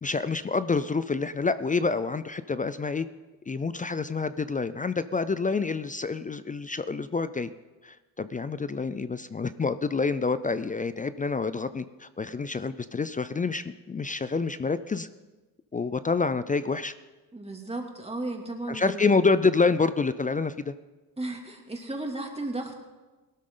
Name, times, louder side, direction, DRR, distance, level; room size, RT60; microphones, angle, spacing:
voice 1, 0.0-3.1 3.5-7.5 7.8-15.1 15.7-16.9 18.7-20.7, left 4 dB, 20° left, 13 dB, 0.5 m, -27 dB
voice 2, 17.3-19.0 21.2-22.7, right 2 dB, 15° right, 1 dB, 2.7 m, -34 dB
17.5 x 13.0 x 3.9 m, 1.2 s
cardioid pair, 80°, 40 cm